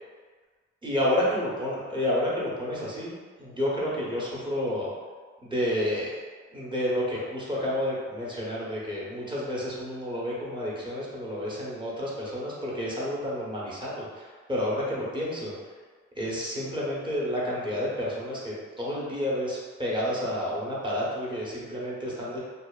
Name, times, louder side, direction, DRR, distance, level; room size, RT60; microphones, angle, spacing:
voice 1, 0.8-4.9 5.4-6.1 6.5-15.5 16.2-22.4, left 1 dB, 15° right, -6 dB, 0.7 m, -30 dB
2.5 x 2.2 x 2.2 m, 1.5 s
cardioid pair, 90°, 30 cm